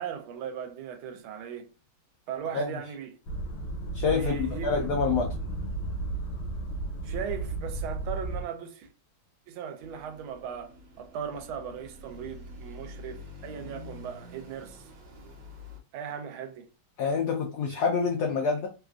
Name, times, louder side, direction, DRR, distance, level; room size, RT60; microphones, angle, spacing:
voice 1, 0.0-1.7 2.3-3.2 4.1-4.7 7.0-8.9 9.5-14.8 15.9-16.6, right 7 dB, 80° right, 1.4 m, -38 dB
sound 1, 3.3-8.4, right 2 dB, 70° left, 1.4 m, -33 dB
voice 2, 3.9-5.3 17.0-18.7, left 5 dB, 85° left, 0.8 m, -27 dB
sound 2, 9.8-15.8, left 2 dB, 65° right, 1.3 m, -46 dB
3.4 x 2.4 x 2.3 m
omnidirectional pair, 2.3 m